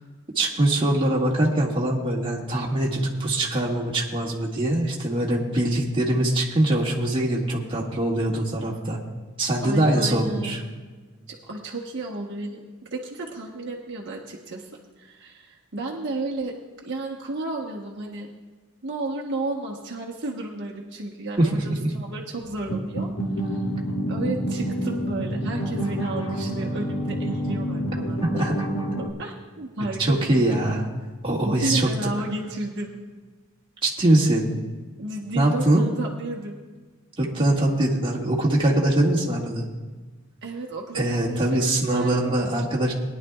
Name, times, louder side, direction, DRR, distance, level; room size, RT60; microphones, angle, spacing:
voice 1, 0.4-9.0 9.4-10.6 21.4-21.9 28.3-28.5 30.0-30.8 31.2-31.9 33.8-34.5 35.3-35.8 37.2-39.6 40.9-42.9, right 1 dB, 25° right, -4 dB, 2.0 m, -22 dB
voice 2, 9.6-10.7 11.3-14.7 15.0-16.6 16.8-18.3 18.8-23.1 23.3-23.6 24.1-28.2 29.0-30.6 31.4-33.0 35.0-36.6 40.4-42.3, right 2 dB, 55° right, -1 dB, 1.2 m, -33 dB
sound 1, 22.5-29.1, right 1 dB, 80° left, 1.5 m, -28 dB
21.0 x 11.0 x 2.4 m, 1.3 s
head